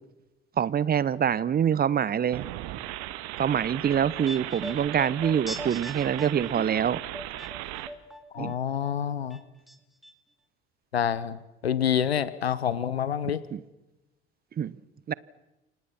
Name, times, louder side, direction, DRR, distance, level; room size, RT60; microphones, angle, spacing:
voice 1, 0.6-2.5 3.4-7.0 8.4-8.5 13.5-13.6 14.6-14.7 15.1-15.2, right 8 dB, 30° right, 0.9 m, -25 dB
sound 1, 2.3-7.9, right 15 dB, 60° right, 1.6 m, -37 dB
sound 2, 3.3-8.5 8.8-9.8 10.0-10.1, equal, ahead, 3.2 m, -41 dB
voice 2, 8.3-9.4 10.9-11.4 11.6-13.4, left 8 dB, 85° left, 1.1 m, -27 dB
29.5 x 25.5 x 6.0 m
figure-of-eight pair, 60°, 30 cm